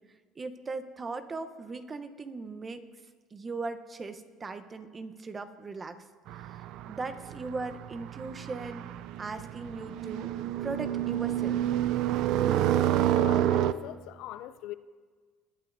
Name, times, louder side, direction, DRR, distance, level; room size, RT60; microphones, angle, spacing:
voice 1, 0.4-2.8 3.3-6.0 6.3-8.9 9.2-10.3 10.6-11.6, right 3 dB, 30° right, 0.7 m, -38 dB
sound 1, 6.3-13.7, right 12 dB, 70° right, 0.3 m, -29 dB
voice 2, 13.2-14.7, left 14 dB, 75° left, 0.3 m, -41 dB
18.5 x 8.4 x 2.6 m
supercardioid pair, 85°, 0 cm